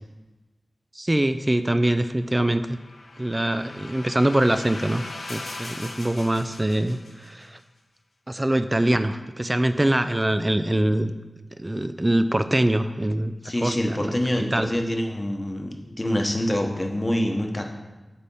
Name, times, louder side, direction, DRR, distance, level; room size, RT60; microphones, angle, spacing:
voice 1, 1.0-2.8 3.2-5.0 5.3-7.0 7.3-7.5 8.3-11.1 11.6-13.3 13.6-14.1 14.5-14.7, right 1 dB, 20° right, 10 dB, 0.3 m, -23 dB
sound 1, 2.2-7.5, left 2 dB, 90° left, 1.0 m, -40 dB
voice 2, 13.4-17.6, left 1 dB, 25° left, 2 dB, 1.0 m, -26 dB
8.4 x 3.4 x 5.3 m, 1.1 s
wide cardioid pair, 80°, 0 cm